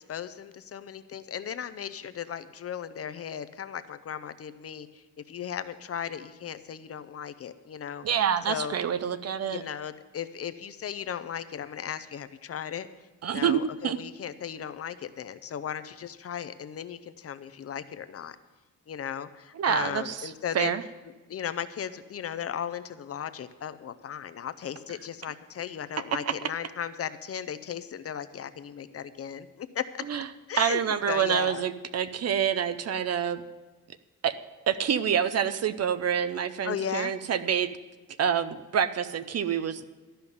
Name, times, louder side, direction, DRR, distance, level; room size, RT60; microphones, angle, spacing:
voice 1, 0.0-8.8 9.5-12.9 13.3-18.4 18.9-20.7 21.3-29.9 30.5-31.7 36.6-37.1, left 8 dB, 45° left, 12 dB, 0.6 m, -36 dB
voice 2, 8.0-9.6 13.2-14.0 19.6-20.3 20.5-20.8 30.1-30.3 30.6-33.4 34.2-34.3 34.7-37.8 38.2-39.9, right 8 dB, 50° right, 12 dB, 0.7 m, -27 dB
13.0 x 5.7 x 9.3 m, 1.2 s
cardioid pair, 125°, 32 cm